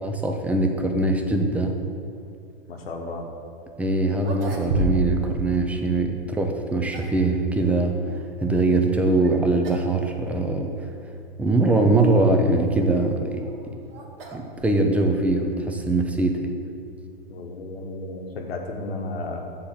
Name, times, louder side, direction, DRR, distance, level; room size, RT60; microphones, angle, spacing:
voice 1, 0.0-1.8 3.8-8.0 8.4-10.7 11.4-13.5 14.3-16.5, right 2 dB, 5° right, 3 dB, 0.5 m, -22 dB
voice 2, 2.7-3.3 17.3-19.4, left 2 dB, 85° left, 2 dB, 1.2 m, -33 dB
sound 1, 3.7-3.8 4.2-5.3 5.5-5.7 6.5-7.2 9.0-9.3 9.6-9.9 10.2-10.3 11.1-11.2 13.0-15.1, equal, 75° right, 1.3 m, -31 dB
7.5 x 3.7 x 6.6 m, 2.5 s
hypercardioid pair, 125°, 30 cm